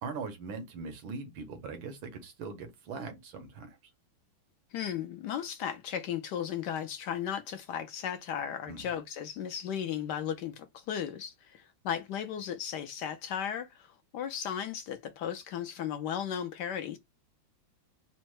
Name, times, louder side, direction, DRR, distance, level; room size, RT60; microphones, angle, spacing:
voice 1, 0.0-3.8 8.7-8.9, right 4 dB, 85° right, 1.8 m, -41 dB
voice 2, 4.7-17.0, left 9 dB, 70° left, 1.0 m, -35 dB
4.2 x 2.1 x 4.6 m
omnidirectional pair, 2.1 m